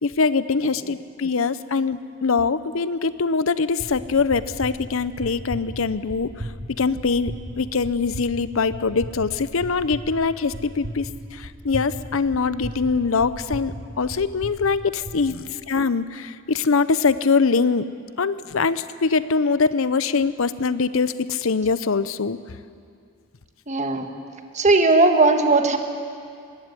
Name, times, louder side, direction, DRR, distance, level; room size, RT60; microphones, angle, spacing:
voice 1, 0.0-6.3 6.8-11.1 11.3-15.4 15.7-17.9 18.2-22.4, left 4 dB, 70° left, 15 dB, 0.7 m, -23 dB
sound 1, 3.8-15.2, equal, 80° right, 4.5 m, -37 dB
voice 2, 23.7-24.1 24.5-25.8, right 3 dB, 35° right, 5 dB, 1.7 m, -17 dB
20.5 x 16.0 x 9.8 m, 2.3 s
head